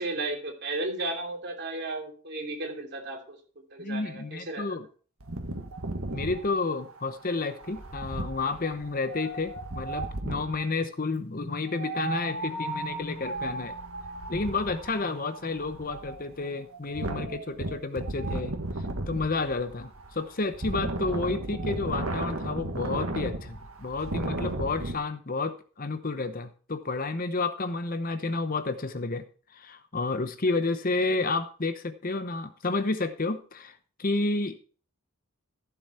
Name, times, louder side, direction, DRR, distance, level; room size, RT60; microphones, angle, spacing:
voice 1, 0.0-4.6, right 2 dB, 50° right, 1 dB, 3.1 m, -34 dB
voice 2, 3.8-4.9 5.5-5.6 6.1-13.8 14.3-29.2 29.5-34.6, left 3 dB, 40° left, 11 dB, 0.8 m, -31 dB
Wind, 5.2-10.6 11.7-24.9, right 2 dB, 70° right, 1.7 m, -35 dB
Mallet percussion, 11.9-19.4, left 3 dB, 5° right, 7.3 m, -54 dB
15.0 x 7.1 x 4.3 m, 0.40 s
head